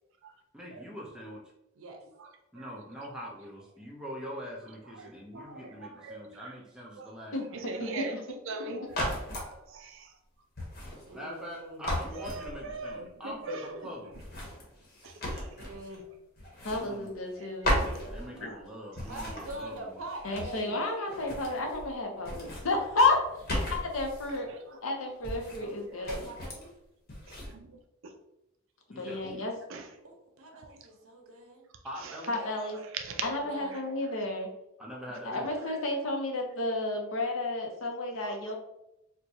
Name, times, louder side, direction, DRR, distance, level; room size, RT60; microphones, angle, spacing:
voice 1, 0.5-1.4 2.5-7.3 11.1-14.1 16.8-17.1 18.0-20.0 28.9-29.4 31.8-32.4 34.8-35.5, equal, 5° right, -3 dB, 0.6 m, -43 dB
voice 2, 5.0-5.7 6.0-6.5 7.0-7.1 7.5-8.1 8.5-8.9 9.4-10.1 12.1-13.7 15.0-15.5 17.4-18.6 21.2-21.3 24.3-24.6 26.0-26.1 27.5-27.8 28.0-28.1 29.7-29.9 30.5-30.7 32.0-32.1 32.8-33.4 38.2-38.4, right 3 dB, 60° right, 5 dB, 0.4 m, -41 dB
voice 3, 7.3-8.2 16.6-17.9 18.3-18.5 20.2-24.5 24.8-26.3 29.0-29.5 32.3-32.8 33.2-34.5 35.2-38.5, left 2 dB, 70° left, 2 dB, 0.7 m, -31 dB
sound 1, 8.9-9.5 10.6-11.5 11.8-12.9 14.1-16.0 16.4-17.4 17.6-18.6 18.9-20.8 21.0-21.9 22.2-24.4 25.2-25.8 26.0-26.7 27.1-27.5, equal, 45° left, 1.0 m, -36 dB
voice 4, 11.0-11.9 15.6-16.0 19.1-20.8 26.0-26.7 30.0-31.6 33.4-33.7, right 2 dB, 80° right, 2 dB, 0.8 m, -44 dB
4.4 x 2.2 x 2.7 m, 0.86 s
head